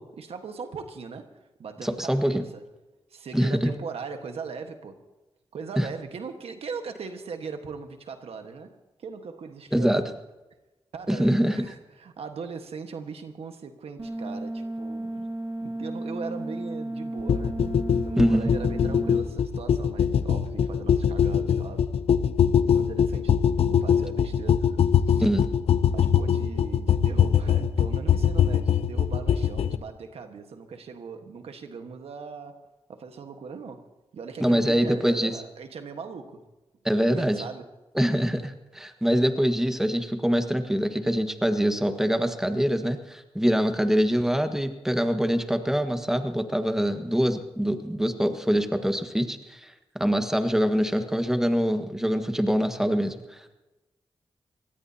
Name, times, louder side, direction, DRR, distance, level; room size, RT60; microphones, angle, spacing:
voice 1, 0.0-2.7 3.1-5.0 5.5-10.1 10.9-15.3 15.6-17.7 18.0-21.9 22.4-24.8 25.1-25.2 25.9-33.9 34.1-36.5 37.0-37.7, right 5 dB, 85° right, 6 dB, 1.5 m, -39 dB
voice 2, 1.8-2.4 3.3-3.7 5.8-5.9 9.7-10.0 11.1-11.6 18.2-18.5 25.2-25.5 34.4-35.4 36.8-37.4 37.9-53.6, equal, 5° right, 6 dB, 1.6 m, -24 dB
sound 1, 14.0-19.2, right 1 dB, 35° right, 3.2 m, -34 dB
sound 2, 17.3-29.8, left 8 dB, 85° left, 0.6 m, -22 dB
23.5 x 18.5 x 2.9 m, 1.1 s
cardioid pair, 65°, 10 cm